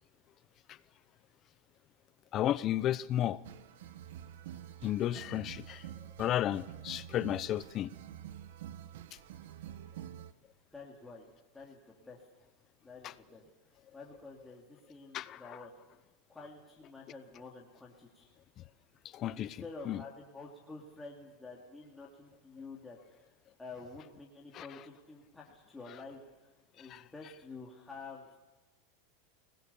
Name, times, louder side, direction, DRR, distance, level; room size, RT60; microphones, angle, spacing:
voice 1, 2.3-3.4 4.8-5.9 6.2-7.9 13.0-13.1 15.1-15.6 19.1-20.0 24.5-24.7 26.9-27.0, left 12 dB, 35° left, 0.8 m, -33 dB
sound 1, 3.4-10.3, right 11 dB, 75° right, 1.2 m, -48 dB
voice 2, 10.7-11.3 11.5-12.2 12.8-13.4 13.9-15.7 16.3-18.3 19.3-23.3 23.6-26.2 26.7-28.3, left 3 dB, 10° left, 2.8 m, -49 dB
26.0 x 20.0 x 7.1 m
supercardioid pair, 145°, 0 cm